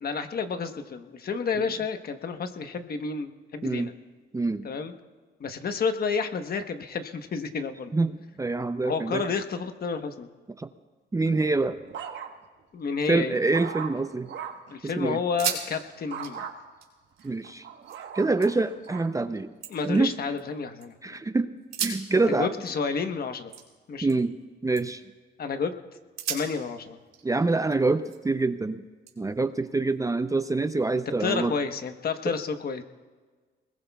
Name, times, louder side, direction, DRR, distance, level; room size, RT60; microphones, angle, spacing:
voice 1, 0.0-3.9 4.6-4.9 5.4-8.0 8.8-10.3 12.7-13.4 14.7-16.5 19.7-21.2 22.1-23.5 23.9-24.2 25.4-25.7 26.3-27.0 31.2-32.8, left 5 dB, 50° left, 7 dB, 1.2 m, -30 dB
voice 2, 4.3-4.7 7.9-9.2 10.6-10.7 11.1-11.8 13.1-14.3 14.8-15.2 17.2-17.6 18.1-19.5 19.8-20.1 21.0-21.5 21.8-22.5 24.0-24.3 24.6-25.0 27.2-28.8 29.2-31.5, right 3 dB, 15° right, 10 dB, 0.6 m, -26 dB
sound 1, 11.2-12.6 13.1-14.7 16.1-16.5 17.2-19.1 19.8-20.1, right 7 dB, 65° right, 1.3 m, -39 dB
sound 2, 13.4-14.4 14.7-14.8 15.2-15.7 16.0-18.0 18.4-18.9 19.3-20.9 21.6-24.4 24.7-25.1 25.6-25.7 26.2-28.4 29.1-30.2, right 8 dB, 90° right, 3.4 m, -38 dB
23.5 x 21.0 x 2.4 m, 1.4 s
cardioid pair, 90°, 20 cm